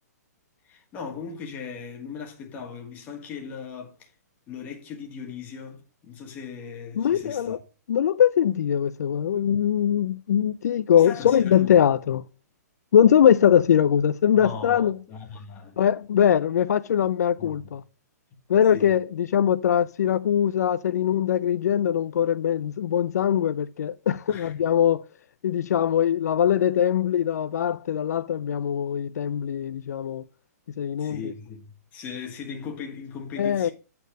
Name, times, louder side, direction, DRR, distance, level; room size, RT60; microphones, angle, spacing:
voice 1, 0.6-4.1 4.5-7.6 11.0-11.8 14.3-15.8 17.4-17.8 18.6-19.0 24.3-24.5 31.0-33.7, left 6 dB, 15° left, 1.4 m, -38 dB
voice 2, 7.0-7.6 7.9-12.2 12.9-15.0 15.8-17.8 18.5-25.0 25.4-30.2 30.8-31.2 33.4-33.7, left 9 dB, 65° left, 0.4 m, -22 dB
8.3 x 4.3 x 6.5 m
hypercardioid pair, 165°, 9 cm